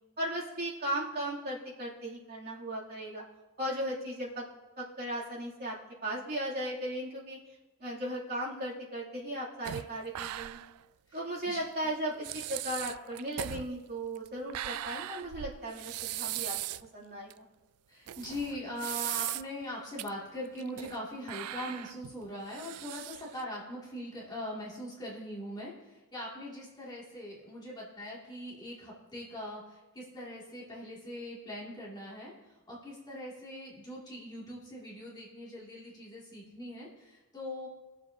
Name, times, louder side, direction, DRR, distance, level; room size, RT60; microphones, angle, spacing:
voice 1, 0.2-3.2 3.6-4.4 4.8-5.8 6.0-7.4 7.8-10.6 11.1-16.6 16.9-17.5, right 1 dB, 45° right, -6 dB, 2.7 m, -36 dB
sound 1, 9.6-10.8 11.1-11.2 11.9-12.0 12.2-16.9 17.3-17.4 18.1-19.6 20.0-20.1 20.5-21.0 21.3-23.4, right 14 dB, 85° right, 0.3 m, -39 dB
voice 2, 11.1-11.9 17.9-32.3 32.7-37.7, left 1 dB, 20° left, -6 dB, 2.3 m, -41 dB
21.5 x 7.3 x 2.7 m, 1.1 s
head